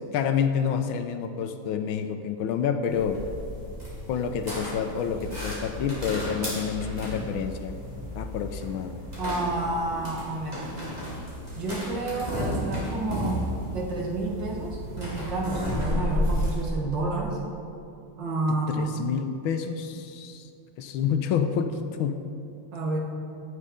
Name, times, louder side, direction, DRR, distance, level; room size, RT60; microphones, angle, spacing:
voice 1, 0.1-3.2 4.1-7.8 8.1-9.0 18.5-20.5 20.8-22.2, left 7 dB, 80° left, 8 dB, 1.4 m, -28 dB
sound 1, 2.9-16.7, left 1 dB, 20° right, 3.5 m, -33 dB
voice 2, 9.2-10.6 11.6-13.5 13.7-17.4 18.2-19.2 22.7-23.0, right 2 dB, 60° right, -1 dB, 2.2 m, -30 dB
16.5 x 6.6 x 5.0 m, 2.6 s
omnidirectional pair, 2.4 m